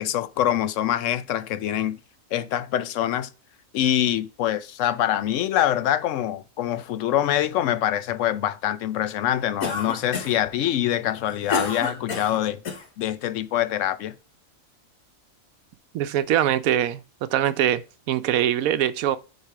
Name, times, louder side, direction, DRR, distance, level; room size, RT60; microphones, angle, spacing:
voice 1, 0.0-2.0 2.3-3.3 3.7-12.6 13.0-14.1, left 11 dB, 70° left, 0.9 m, -24 dB
Cough, 9.6-10.5 11.1-12.9, left 4 dB, 90° left, 1.6 m, -30 dB
voice 2, 15.9-19.2, right 11 dB, 90° right, 1.0 m, -23 dB
7.3 x 3.3 x 4.6 m
omnidirectional pair, 1.4 m